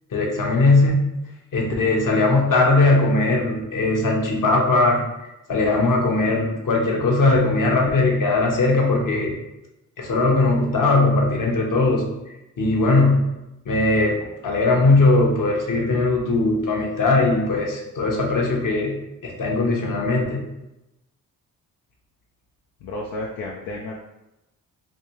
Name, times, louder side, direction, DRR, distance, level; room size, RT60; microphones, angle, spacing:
voice 1, 0.1-1.0 1.5-5.0 5.5-9.3 10.0-12.1 12.6-13.2 13.7-14.2 14.4-18.9 19.2-20.4, left 2 dB, 65° left, 0 dB, 0.9 m, -19 dB
voice 2, 22.8-23.9, left 2 dB, 90° left, -2 dB, 0.5 m, -31 dB
3.3 x 2.7 x 2.9 m, 0.94 s
cardioid pair, 55°, 35 cm